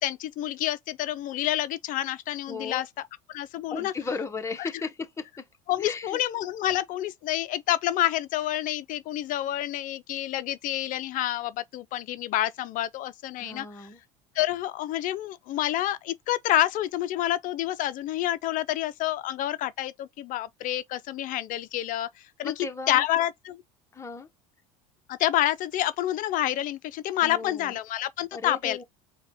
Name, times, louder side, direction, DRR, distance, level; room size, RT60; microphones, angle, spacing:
voice 1, 0.0-2.9 3.3-3.9 4.6-4.7 5.7-13.9 14.4-22.5 22.9-23.6 25.1-28.8, left 13 dB, 50° left, 0.5 m, -28 dB
voice 2, 2.5-2.8 3.7-5.5 5.8-6.2 13.4-14.0 22.4-23.0 23.9-24.3 27.2-27.8 28.3-28.8, left 4 dB, 15° left, 1.0 m, -35 dB
4.7 x 2.3 x 3.4 m
hypercardioid pair, 85°, 17 cm